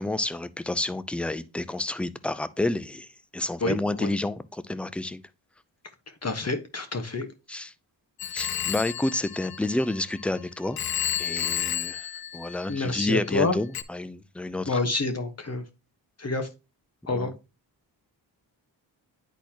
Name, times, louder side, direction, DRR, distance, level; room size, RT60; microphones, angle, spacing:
voice 1, 0.0-3.1 3.3-5.2 7.5-7.7 8.3-10.8 11.2-14.8 17.1-17.3, left 2 dB, 5° left, 0.4 m, -30 dB
voice 2, 3.6-4.1 6.2-7.3 12.7-13.6 14.7-15.6 16.2-16.5 17.1-17.3, left 3 dB, 35° left, 1.3 m, -28 dB
Telephone, 8.2-10.3 10.8-13.1 13.7-13.8, left 11 dB, 55° left, 0.6 m, -32 dB
10.0 x 4.1 x 2.9 m
cardioid pair, 60°, 45 cm